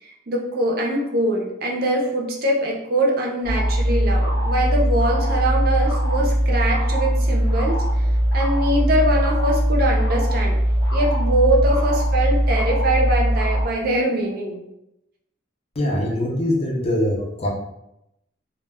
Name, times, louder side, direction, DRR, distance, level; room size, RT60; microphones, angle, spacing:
voice 1, 0.0-7.8 8.3-10.6 10.9-14.6, right 1 dB, 50° right, -2 dB, 0.5 m, -23 dB
sound 1, 3.4-13.6, equal, 75° left, 0.7 m, -20 dB
voice 2, 15.8-17.5, left 1 dB, 35° left, -2 dB, 0.5 m, -22 dB
2.2 x 2.1 x 3.3 m, 0.85 s
head